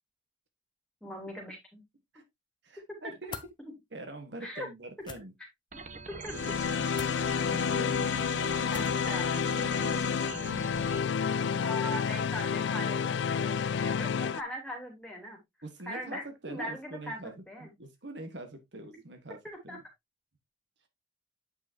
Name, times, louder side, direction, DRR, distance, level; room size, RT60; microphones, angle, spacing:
voice 1, 1.0-1.8 4.4-4.7 6.2-6.3 8.7-9.3 11.6-15.4 15.8-17.7 19.7-19.8, left 1 dB, 5° left, 2.9 m, -40 dB
voice 2, 2.6-3.4 3.9-5.3 7.5-12.1 15.6-17.3 17.6-19.4 19.6-19.8, right 1 dB, 70° right, 1.5 m, -45 dB
sound 1, 3.3-3.5 5.0-5.2 6.9-7.2 8.7-9.0, left 5 dB, 25° left, 0.7 m, -42 dB
sound 2, 5.7-11.0, right 4 dB, 40° right, 0.9 m, -43 dB
sound 3, 6.3-14.4, left 6 dB, 70° left, 0.4 m, -30 dB
8.6 x 5.6 x 2.8 m
head